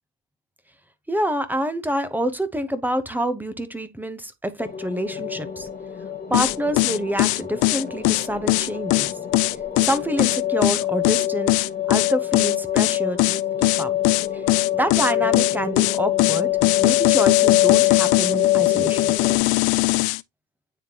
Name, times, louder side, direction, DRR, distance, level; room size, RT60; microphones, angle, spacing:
voice 1, 1.1-5.7 6.3-9.2 9.8-13.3 13.6-13.9 14.3-14.4 14.7-16.5 16.8-19.1, equal, 5° right, 0.8 m, -27 dB
sound 1, 4.6-19.4, left 13 dB, 25° left, 1.2 m, -25 dB
sound 2, 6.3-20.2, left 22 dB, 75° left, 0.5 m, -21 dB
9.3 x 3.5 x 2.9 m
cardioid pair, 115°, 37 cm